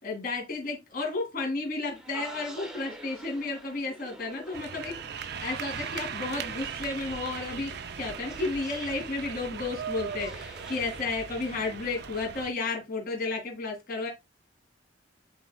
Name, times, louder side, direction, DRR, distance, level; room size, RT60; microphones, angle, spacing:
voice 1, 0.0-5.0 5.4-14.1, left 3 dB, 50° left, 2.5 m, -32 dB
sound 1, 1.9-11.1, equal, 5° right, 1.0 m, -48 dB
sound 2, 4.5-12.5, right 7 dB, 60° right, 0.6 m, -38 dB
11.5 x 4.3 x 2.3 m
head